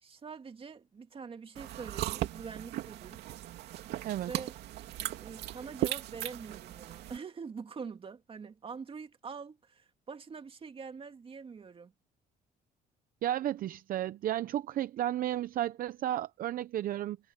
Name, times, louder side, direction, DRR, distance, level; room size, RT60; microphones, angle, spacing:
voice 1, 0.0-3.2 4.3-4.6 5.2-11.9, right 5 dB, 35° right, 2.2 m, -44 dB
sound 1, 1.6-7.2, right 14 dB, 80° right, 2.6 m, -38 dB
voice 2, 13.2-17.2, right 12 dB, 55° right, 0.7 m, -33 dB
cardioid pair, 110°, 17 cm